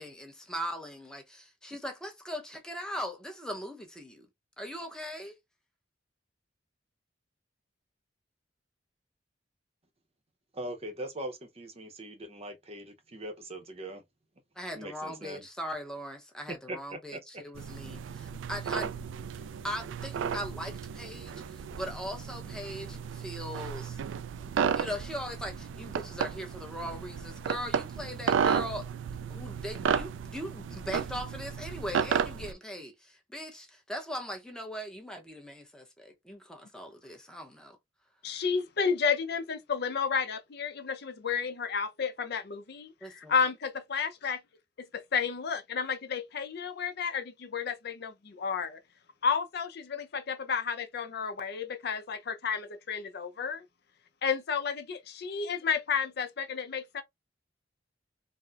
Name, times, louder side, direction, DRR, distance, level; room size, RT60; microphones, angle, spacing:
voice 1, 0.0-4.3 4.6-5.3 14.6-19.0 19.6-24.0 24.7-28.9 29.3-37.8 43.0-43.3, equal, 5° left, 0.7 m, -40 dB
voice 2, 10.5-14.0 14.8-15.5 16.7-17.4, right 1 dB, 35° right, 0.7 m, -41 dB
sound 1, 17.6-32.5, right 7 dB, 85° right, 0.3 m, -33 dB
voice 3, 38.2-44.4 44.9-48.8 49.2-53.7 54.2-57.0, left 6 dB, 60° left, 0.5 m, -32 dB
4.1 x 2.1 x 2.4 m
head